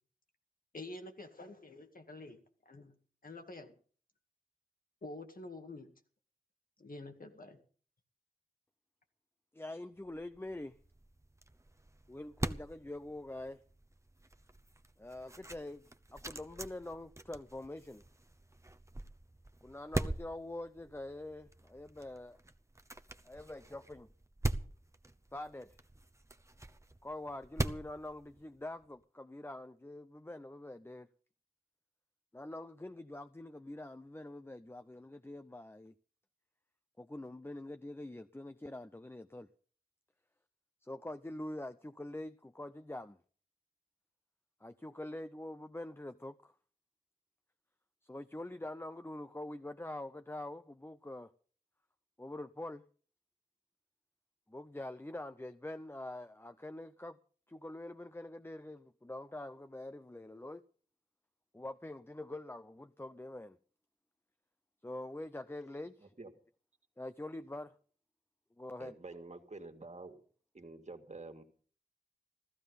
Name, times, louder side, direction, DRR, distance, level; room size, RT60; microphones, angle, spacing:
voice 1, 0.7-2.4 2.7-3.0 3.2-3.7 5.0-5.9 6.8-7.6, left 2 dB, 70° left, 2.1 m, -48 dB
voice 2, 9.5-10.8 12.1-13.6 15.0-18.0 19.6-22.4 23.2-24.1 25.3-25.8 27.0-31.1 32.3-35.9 37.0-39.5 40.8-43.2 44.6-46.5 48.0-51.3 52.2-52.8 54.5-57.2 57.5-60.6 61.5-63.6 64.8-66.1 67.0-67.7 68.6-69.0, left 1 dB, 15° left, 0.6 m, -45 dB
sound 1, 10.1-28.9, right 1 dB, 20° right, 0.9 m, -43 dB
voice 3, 68.8-70.2 70.5-71.4, right 3 dB, 50° right, 2.0 m, -48 dB
15.0 x 14.5 x 5.4 m
wide cardioid pair, 65°, 15 cm